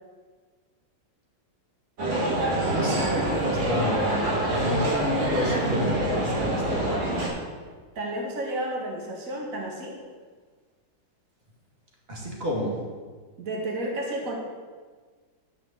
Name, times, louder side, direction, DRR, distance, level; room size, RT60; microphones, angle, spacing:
sound 1, 2.0-7.3, right 1 dB, 90° right, 3.6 m, -26 dB
voice 1, 2.7-7.1 12.1-12.8, equal, 30° right, -3 dB, 2.8 m, -30 dB
voice 2, 8.0-10.0 13.4-14.4, right 1 dB, 45° right, -1 dB, 2.3 m, -31 dB
13.0 x 6.0 x 7.3 m, 1.5 s
omnidirectional pair, 2.0 m